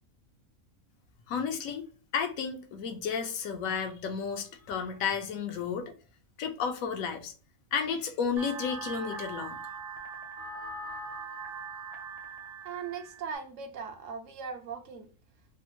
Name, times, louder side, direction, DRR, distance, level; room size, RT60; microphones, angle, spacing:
voice 1, 1.3-5.9 6.4-7.3 7.7-9.6, left 6 dB, 80° left, 1.1 m, -32 dB
sound 1, 8.4-13.4, right 4 dB, 40° right, 0.6 m, -41 dB
voice 2, 12.6-15.1, right 6 dB, 70° right, 0.9 m, -39 dB
3.5 x 2.0 x 2.8 m
omnidirectional pair, 1.4 m